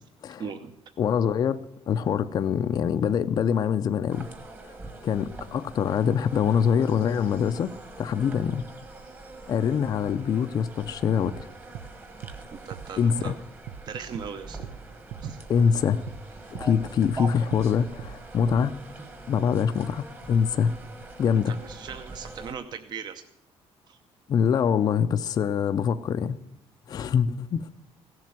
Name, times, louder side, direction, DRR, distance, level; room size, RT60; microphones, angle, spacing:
voice 1, 0.4-0.7 12.6-13.4 13.9-14.6 15.2-15.4 21.5-23.2 23.9-24.0, right 7 dB, 45° right, 8 dB, 0.8 m, -38 dB
voice 2, 1.0-1.6 1.9-4.3 4.7-4.8 5.0-8.7 9.5-11.5 13.0-13.3 15.5-16.0 16.5-18.8 19.3-20.7 21.2-21.5 24.3-26.4 26.9-27.7, left 7 dB, 40° left, 9 dB, 0.5 m, -24 dB
sound 1, 4.1-22.5, right 3 dB, 20° right, 1.3 m, -43 dB
sound 2, 11.3-11.4 11.7-11.9 12.2-12.4 12.7-12.9 13.2-13.3 13.7-13.8 14.1-14.3 14.6-14.8 15.1-15.3 15.6-15.7 16.1-16.2 16.5-16.7 17.0-17.2 17.5-17.7 18.0-18.1 18.5-18.6, right 9 dB, 75° right, 0.7 m, -39 dB
16.5 x 7.5 x 9.4 m, 0.80 s
cardioid pair, 170°, 11 cm